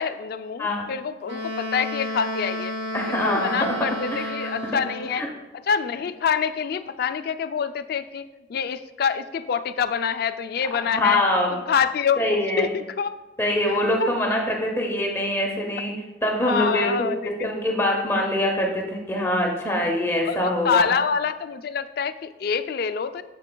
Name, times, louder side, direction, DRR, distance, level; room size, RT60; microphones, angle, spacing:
voice 1, 0.0-2.7 3.2-5.3 5.6-8.2 8.5-11.2 11.5-13.2 13.7-14.1 16.4-17.5 20.2-23.2, left 6 dB, 55° left, 11 dB, 0.3 m, -26 dB
Wind instrument woodwind instrument, 1.2-5.2, left 1 dB, 75° right, 0.7 m, -31 dB
voice 2, 2.9-3.7 4.1-4.5 5.2-5.3 10.9-11.5 12.2-12.6 13.4-15.9 16.2-20.9, left 1 dB, 15° left, 0 dB, 0.8 m, -24 dB
8.1 x 6.8 x 2.2 m, 1.1 s
head